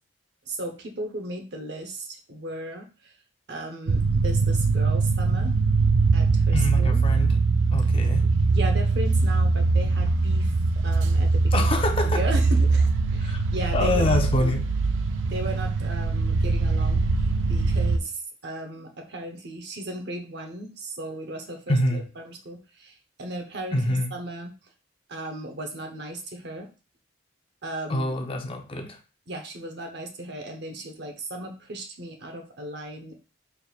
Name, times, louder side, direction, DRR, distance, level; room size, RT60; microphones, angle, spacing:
voice 1, 0.5-3.1 3.5-5.6 6.1-7.0 8.5-11.7 12.0-14.6 15.3-24.5 25.1-26.7 27.6-28.1 29.3-33.2, right 1 dB, 60° right, 0.8 m, -36 dB
sound 1, 3.9-18.0, right 3 dB, 80° right, 0.4 m, -22 dB
voice 2, 6.5-7.4 7.7-8.3 11.5-12.2 13.2-13.4 13.7-14.6 21.7-22.0 23.7-24.2 27.9-29.0, left 1 dB, 30° left, 0.5 m, -26 dB
4.3 x 3.4 x 2.4 m
head